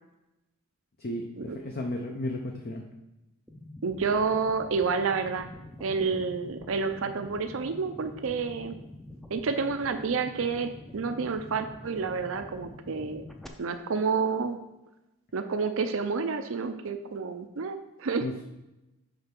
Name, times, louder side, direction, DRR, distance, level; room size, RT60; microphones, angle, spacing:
voice 1, 1.0-2.8 18.2-18.4, left 1 dB, 45° left, 2 dB, 0.6 m, -34 dB
sound 1, 3.5-13.5, left 1 dB, ahead, 0.5 m, -46 dB
voice 2, 3.8-5.5 5.8-8.8 9.3-13.2 13.6-14.6 15.3-18.2, right 5 dB, 60° right, 8 dB, 0.5 m, -29 dB
6.7 x 4.5 x 5.9 m, 0.94 s
head